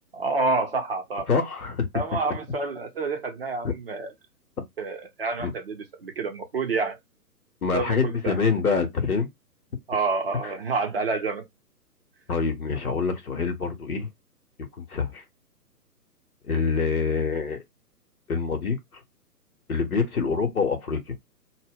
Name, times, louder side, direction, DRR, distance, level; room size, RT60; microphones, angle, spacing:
voice 1, 0.1-1.3 1.9-4.1 4.8-7.0 7.7-8.4 9.9-11.5, right 3 dB, 40° right, 0.6 m, -28 dB
voice 2, 1.3-1.9 5.4-5.5 7.6-9.3 10.4-10.5 12.3-14.1 14.8-15.2 16.5-17.6 18.3-18.8 19.7-21.0, left 5 dB, 60° left, 0.9 m, -25 dB
2.1 x 2.1 x 3.4 m
figure-of-eight pair, 130°, 48 cm